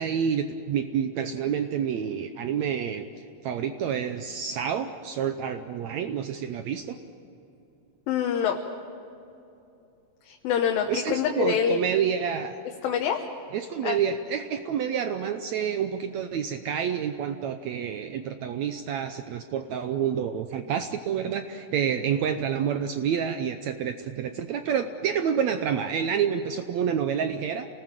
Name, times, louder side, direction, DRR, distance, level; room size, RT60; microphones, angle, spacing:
voice 1, 0.0-3.1 3.4-7.0 10.9-12.5 13.5-27.7, right 8 dB, 80° right, 8 dB, 1.6 m, -28 dB
voice 2, 8.1-8.6 10.2-12.0 12.8-13.3 13.8-14.0, left 8 dB, 80° left, 2 dB, 2.9 m, -26 dB
28.0 x 19.5 x 7.4 m, 2.8 s
omnidirectional pair, 4.2 m